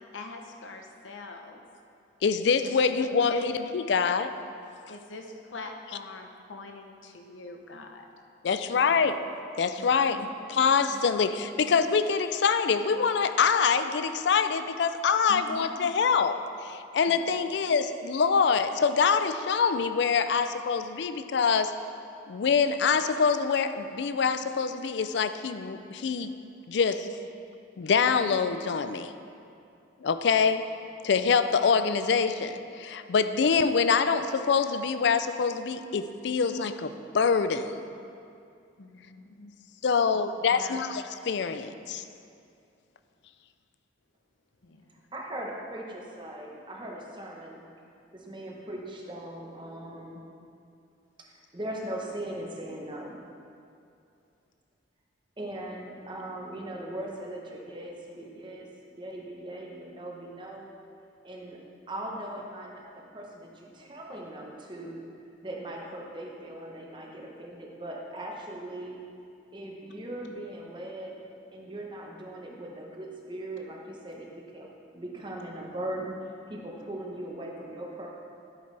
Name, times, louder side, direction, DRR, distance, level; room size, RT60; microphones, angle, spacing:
voice 1, 0.0-1.6 2.6-3.4 4.9-8.1 9.8-10.3 10.9-11.3 15.3-15.6 17.1-17.4 38.8-39.5 40.5-40.8 44.6-44.9, left 3 dB, 75° left, 4 dB, 0.8 m, -41 dB
voice 2, 2.2-4.3 8.4-9.2 9.6-21.7 22.3-26.3 26.7-27.1 27.8-29.1 30.0-30.7 31.0-37.7 39.8-42.0, left 5 dB, 60° left, 10 dB, 0.4 m, -25 dB
voice 3, 45.1-47.7 48.1-50.2 51.2-53.2 55.4-60.7 61.2-61.6 61.9-65.0 65.4-69.0 69.5-71.1 71.5-74.3 74.5-74.7 74.9-78.1, right 1 dB, 25° right, -1 dB, 1.0 m, -39 dB
9.9 x 8.0 x 3.3 m, 2.5 s
head